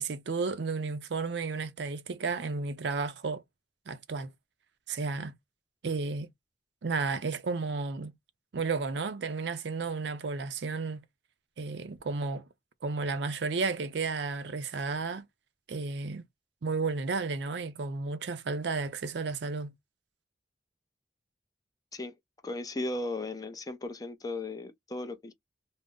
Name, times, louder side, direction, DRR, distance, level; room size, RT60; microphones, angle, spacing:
voice 1, 0.0-3.4 3.9-4.3 4.9-5.3 5.8-6.3 6.8-8.1 8.5-11.0 11.6-12.4 12.8-15.3 15.7-16.3 16.6-19.7, right 4 dB, 75° right, 0.5 m, -32 dB
voice 2, 22.4-25.3, left 2 dB, 20° left, 0.5 m, -36 dB
2.5 x 2.0 x 3.5 m
head